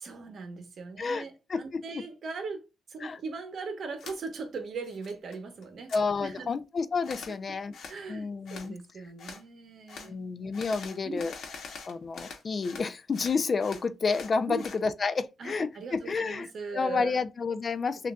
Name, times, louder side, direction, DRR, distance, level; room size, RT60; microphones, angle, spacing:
voice 1, 0.0-2.6 2.9-5.9 6.2-6.5 7.9-10.1 11.0-11.2 14.5-14.6 15.4-17.2, right 4 dB, 60° right, 0.9 m, -39 dB
voice 2, 1.5-2.0 3.0-3.2 5.9-7.7 8.1-8.8 10.0-11.3 11.9-16.5 16.7-18.1, left 4 dB, 40° left, 0.4 m, -30 dB
sound 1, 4.0-4.2 4.6-5.4 5.6-6.0 7.0-7.4 7.7-8.0 8.5-8.7 9.2-9.4 9.9-10.1 10.5-12.9 13.1-14.8, left 5 dB, 70° left, 1.0 m, -44 dB
6.4 x 2.5 x 2.3 m
cardioid pair, 120°, 0 cm